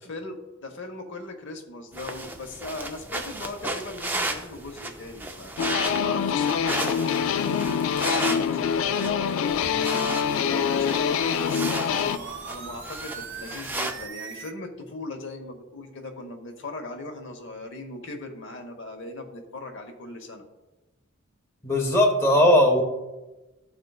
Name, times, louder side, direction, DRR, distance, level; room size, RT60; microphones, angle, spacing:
voice 1, 0.0-5.5 5.8-10.0 10.5-20.4, left 2 dB, 60° left, 4 dB, 0.8 m, -38 dB
sound 1, 1.9-14.1, right 2 dB, 10° right, 0.3 m, -34 dB
sound 2, 5.6-12.2, left 7 dB, 75° left, 0.3 m, -25 dB
sound 3, 9.5-14.5, right 4 dB, 60° right, 0.7 m, -40 dB
voice 2, 21.6-22.8, left 1 dB, 15° left, 0 dB, 0.7 m, -18 dB
12.0 x 4.3 x 2.3 m, 1.1 s
head